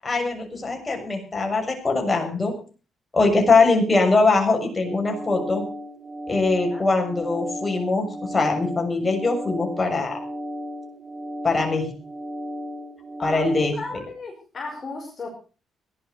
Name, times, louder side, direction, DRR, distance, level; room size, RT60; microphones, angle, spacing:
voice 1, 0.0-2.5 3.1-5.6 6.3-10.2 11.4-11.9 13.2-13.8, left 3 dB, 25° left, 2 dB, 6.9 m, -22 dB
sound 1, 4.9-13.7, equal, 40° right, 5.2 m, -35 dB
voice 2, 13.8-15.3, left 3 dB, 40° left, 0 dB, 5.3 m, -34 dB
18.0 x 11.0 x 6.6 m, 0.39 s
cardioid pair, 90°, 0 cm